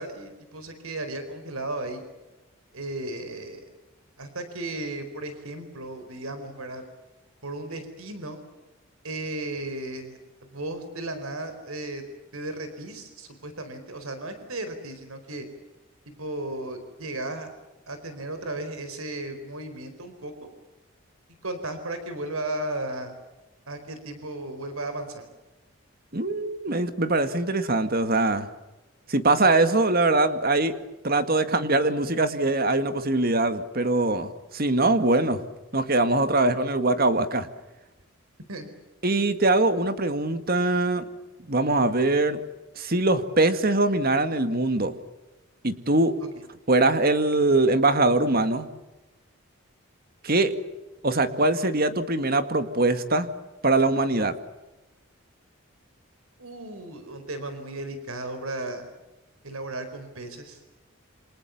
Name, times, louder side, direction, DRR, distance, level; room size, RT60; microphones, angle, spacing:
voice 1, 0.0-2.0 2.7-3.6 4.2-6.8 7.4-8.4 9.0-10.2 10.5-12.0 12.3-15.5 16.2-17.5 17.9-20.5 21.4-23.1 23.7-25.2 38.5-38.6 56.4-58.8 59.4-60.6, right 2 dB, 90° right, 9 dB, 4.5 m, -35 dB
voice 2, 26.1-28.5 29.1-30.7 31.0-35.4 35.7-37.5 39.0-41.0 41.5-42.4 42.8-45.0 45.6-46.2 46.7-48.7 50.2-50.5 51.0-53.3 53.6-54.3, right 2 dB, 45° right, 10 dB, 2.0 m, -22 dB
28.5 x 26.5 x 7.2 m, 1.1 s
head